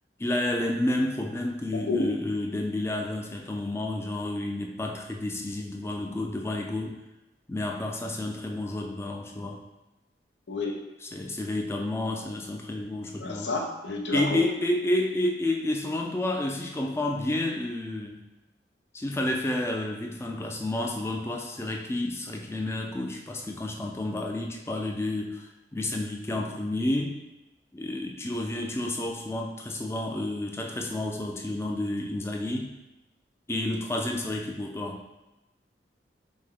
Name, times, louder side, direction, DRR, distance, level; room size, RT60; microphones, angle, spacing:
voice 1, 0.2-7.0 7.5-9.6 11.0-13.5 14.1-18.2 18.9-27.2 27.7-32.8 33.5-35.1, left 1 dB, 15° left, 1 dB, 0.4 m, -30 dB
voice 2, 13.2-14.4, left 3 dB, 80° left, 1 dB, 0.7 m, -29 dB
5.2 x 2.2 x 3.5 m, 0.99 s
head